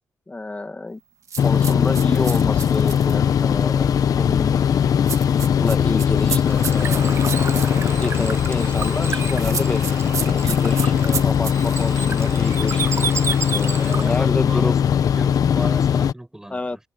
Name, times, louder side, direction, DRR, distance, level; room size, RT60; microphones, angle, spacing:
voice 1, 0.3-1.0 1.4-4.6 5.6-7.2 8.0-9.9 10.3-12.8 13.5-14.8 16.5-16.8, left 2 dB, 20° left, 2.0 m, -29 dB
sound 1, 1.3-3.2 5.1-7.7 9.3-11.8, right 7 dB, 60° right, 2.1 m, -31 dB
sound 2, 1.4-16.1, left 8 dB, 70° left, 1.1 m, -20 dB
Bird / Water, 5.9-14.3, right 5 dB, 45° right, 0.9 m, -31 dB
voice 2, 13.8-16.8, right 1 dB, 10° right, 6.6 m, -36 dB
cardioid pair, 110°, 6 cm